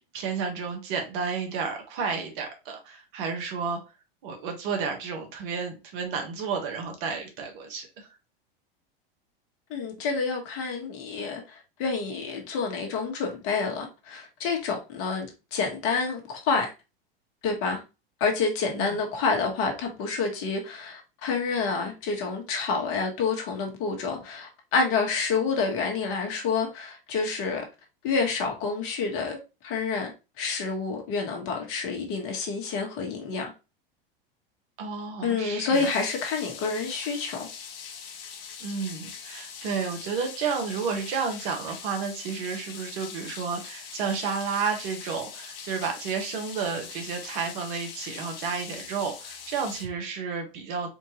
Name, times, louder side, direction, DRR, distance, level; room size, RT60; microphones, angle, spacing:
voice 1, 0.1-3.8 4.2-8.1 18.7-19.0 34.8-35.9 38.6-50.9, right 5 dB, 60° right, 1.4 m, -31 dB
voice 2, 9.7-16.7 17.4-17.8 18.2-27.6 28.0-30.1 30.4-33.5 35.2-37.5, left 4 dB, 50° left, 1.6 m, -28 dB
sound 1, 35.7-49.9, left 6 dB, 70° left, 1.1 m, -42 dB
4.4 x 2.7 x 3.0 m
hypercardioid pair, 100°, 29 cm